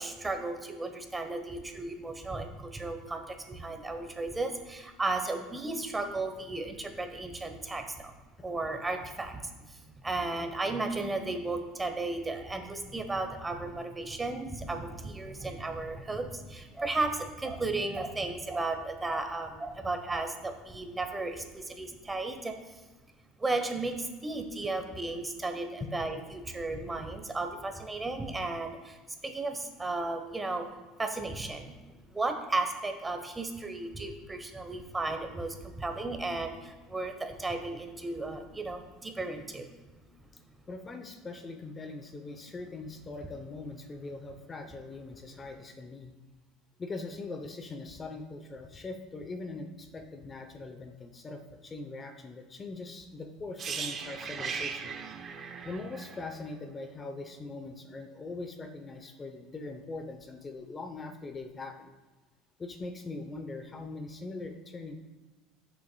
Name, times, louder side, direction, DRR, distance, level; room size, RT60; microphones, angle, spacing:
voice 1, 0.0-8.1 8.4-22.8 23.4-30.7 31.0-31.8 32.1-40.2, right 2 dB, 15° right, 6 dB, 1.0 m, -34 dB
voice 2, 40.7-46.1 46.8-55.0 55.6-61.9 62.6-65.0, left 3 dB, 25° left, 6 dB, 0.7 m, -41 dB
sound 1, 53.6-57.4 57.7-57.9, right 6 dB, 40° right, 0.8 m, -38 dB
11.0 x 6.8 x 2.3 m, 1.2 s
supercardioid pair, 95°, 0 cm